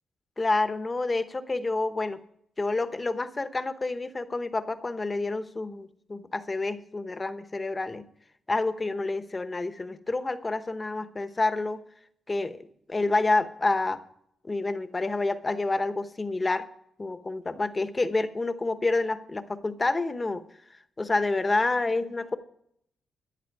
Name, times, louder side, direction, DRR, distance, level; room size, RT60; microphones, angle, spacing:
voice 1, 0.4-2.2 2.6-8.0 8.5-11.8 12.3-14.0 14.4-16.7 17.0-20.4 21.0-22.4, left 2 dB, 25° left, 11 dB, 1.0 m, -28 dB
14.5 x 10.5 x 4.7 m, 0.69 s
cardioid pair, 125°, 0 cm